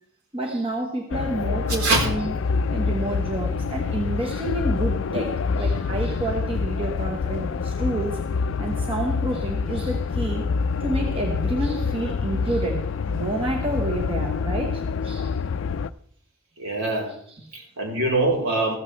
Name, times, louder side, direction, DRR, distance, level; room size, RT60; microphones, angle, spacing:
voice 1, 0.3-2.3 2.7-8.2 8.6-10.5 10.8-15.3 17.3-17.5, right 2 dB, 25° right, 1 dB, 1.3 m, -29 dB
sound 1, 1.1-15.9, left 5 dB, 60° left, 0.4 m, -26 dB
voice 2, 16.6-17.1 17.5-18.8, right 2 dB, 85° right, -1 dB, 4.1 m, -23 dB
14.5 x 14.0 x 3.3 m, 0.62 s
head